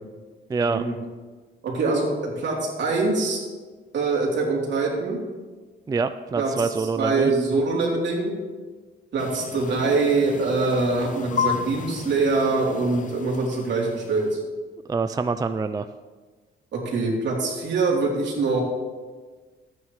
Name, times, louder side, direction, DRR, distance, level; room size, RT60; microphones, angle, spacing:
voice 1, 0.5-0.8 5.9-7.3 14.9-15.9, right 4 dB, 20° right, 10 dB, 0.3 m, -25 dB
voice 2, 1.6-3.4 3.9-5.2 6.4-8.3 9.1-14.4 16.7-18.6, right 3 dB, 65° right, -3 dB, 3.3 m, -24 dB
sound 1, 9.2-14.3, left 7 dB, 40° left, 0.6 m, -33 dB
14.0 x 9.2 x 3.2 m, 1.4 s
cardioid pair, 90°, 20 cm